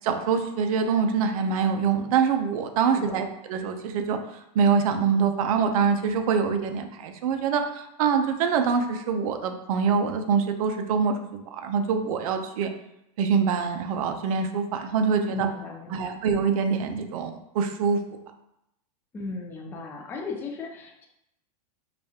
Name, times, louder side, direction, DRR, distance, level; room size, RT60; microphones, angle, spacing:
voice 1, 0.0-4.2 4.5-12.7 13.2-15.5 15.9-18.0, right 6 dB, 65° right, 6 dB, 0.5 m, -25 dB
voice 2, 15.3-16.2 19.1-21.1, left 3 dB, 10° left, 0 dB, 0.4 m, -36 dB
5.0 x 2.3 x 2.8 m, 0.82 s
supercardioid pair, 150°, 20 cm